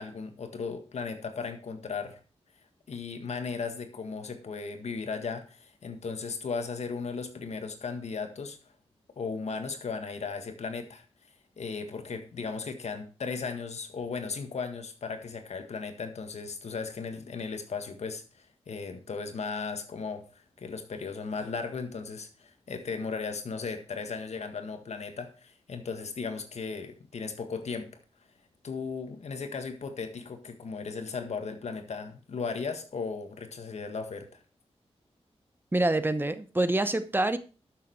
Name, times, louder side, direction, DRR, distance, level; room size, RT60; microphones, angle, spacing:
voice 1, 0.0-2.2 2.9-8.6 9.2-11.0 11.6-20.3 20.6-27.9 28.6-34.4, left 5 dB, 80° left, 1.7 m, -36 dB
voice 2, 35.7-37.4, right 2 dB, 20° right, 0.8 m, -26 dB
12.0 x 6.8 x 4.5 m
wide cardioid pair, 105°, 11 cm